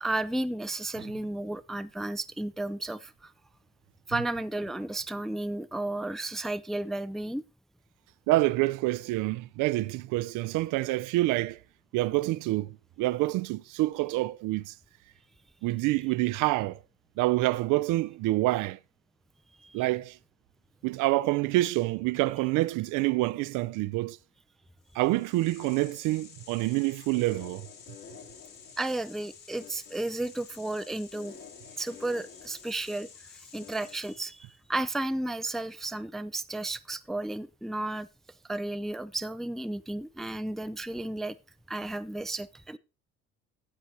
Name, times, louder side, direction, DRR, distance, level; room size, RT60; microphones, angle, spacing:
voice 1, 0.0-3.3 4.1-7.4 19.6-19.8 28.8-31.4 31.8-38.1 38.5-41.4 41.7-42.8, right 2 dB, ahead, 0.4 m, -33 dB
voice 2, 8.3-11.6 11.9-14.7 15.6-16.8 17.2-18.8 19.7-20.2 20.8-24.2 24.9-27.7, right 19 dB, 60° right, 0.5 m, -27 dB
sound 1, 24.9-34.5, left 6 dB, 65° left, 2.6 m, -49 dB
13.0 x 8.1 x 2.8 m
hypercardioid pair, 60°, 35 cm